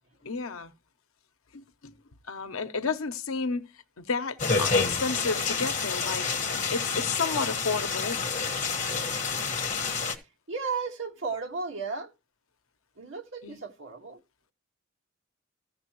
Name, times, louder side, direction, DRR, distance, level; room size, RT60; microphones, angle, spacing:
voice 1, 0.2-0.7 1.5-2.0 2.3-8.2 13.4-13.6, left 4 dB, 75° left, 0.8 m, -32 dB
sound 1, 4.4-10.2, left 5 dB, 35° left, 1.3 m, -29 dB
voice 2, 10.5-12.1 13.0-14.2, right 4 dB, 65° right, 1.6 m, -34 dB
15.0 x 6.6 x 3.0 m
head